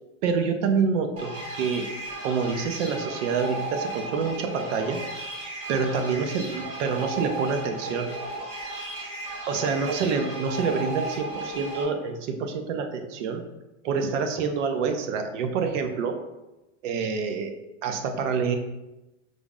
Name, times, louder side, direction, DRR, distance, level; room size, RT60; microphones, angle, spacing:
voice 1, 0.2-1.9 2.2-5.0 5.7-8.1 9.5-13.4 13.8-16.2 16.8-17.5 17.8-18.6, right 5 dB, 75° right, 6 dB, 0.7 m, -27 dB
sound 1, 1.2-11.8, right 2 dB, 40° right, 1.3 m, -35 dB
5.1 x 2.0 x 3.6 m, 1.0 s
supercardioid pair, 145°, 38 cm